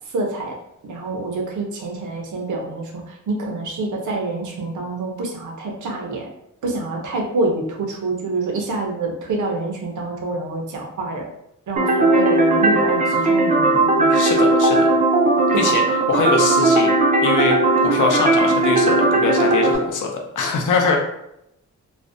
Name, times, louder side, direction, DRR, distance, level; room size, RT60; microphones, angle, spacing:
voice 1, 0.1-0.5 0.8-6.3 6.6-11.2 11.7-14.3 15.5-15.7, right 2 dB, 75° right, 1 dB, 0.6 m, -26 dB
sound 1, 11.8-19.8, right 2 dB, 25° right, 0.4 m, -17 dB
voice 2, 14.1-14.9 15.6-15.8 16.1-16.9 17.2-21.0, left 4 dB, 80° left, 1 dB, 0.5 m, -22 dB
2.4 x 2.0 x 2.4 m, 0.81 s
wide cardioid pair, 100°, 30 cm